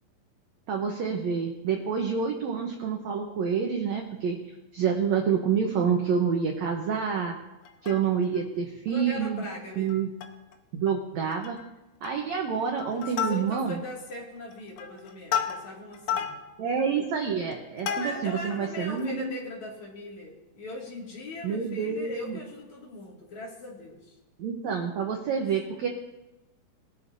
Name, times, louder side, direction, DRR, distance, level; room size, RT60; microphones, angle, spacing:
voice 1, 0.7-4.4 4.7-7.3 7.8-9.4 9.8-10.1 10.7-11.6 12.0-13.8 16.6-19.3 21.4-22.4 24.4-25.9, right 6 dB, 75° right, 2 dB, 1.7 m, -28 dB
Plucked string instrument, 7.6-8.4 8.9-9.0 9.2-9.4 9.9-10.5 10.9-11.0 11.3-11.7 12.0-12.4 12.8-13.8 14.4-18.5 19.0-19.1, left 8 dB, 85° left, 3.0 m, -33 dB
voice 2, 8.9-9.9 12.9-16.3 17.9-24.2, left 2 dB, 50° left, -3 dB, 3.4 m, -40 dB
22.0 x 11.0 x 2.7 m, 0.99 s
omnidirectional pair, 4.5 m